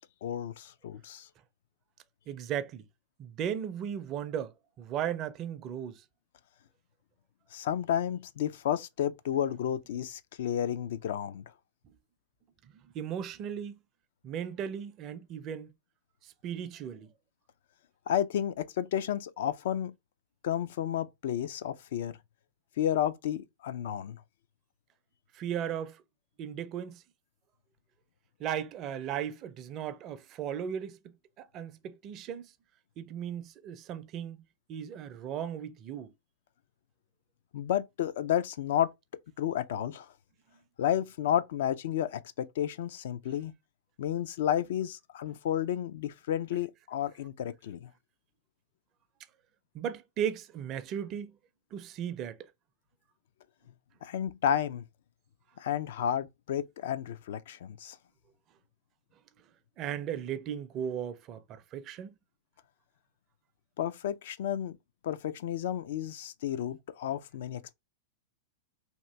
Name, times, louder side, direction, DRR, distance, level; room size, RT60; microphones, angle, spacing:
voice 1, 0.2-1.3 7.5-11.5 18.1-19.9 20.4-22.2 22.8-24.2 37.5-38.9 39.4-40.1 40.8-43.5 44.0-47.9 54.0-54.8 55.6-58.0 63.8-64.8 65.0-67.6, left 10 dB, 70° left, 0.3 m, -31 dB
voice 2, 2.3-2.8 3.2-6.0 12.9-13.8 14.2-15.7 16.2-17.1 25.3-26.0 26.4-27.0 28.4-32.5 33.0-34.4 34.7-36.1 49.7-51.4 51.7-52.4 59.8-62.1, right 9 dB, 40° right, 0.4 m, -36 dB
2.8 x 2.5 x 3.2 m
hypercardioid pair, 105°, 0 cm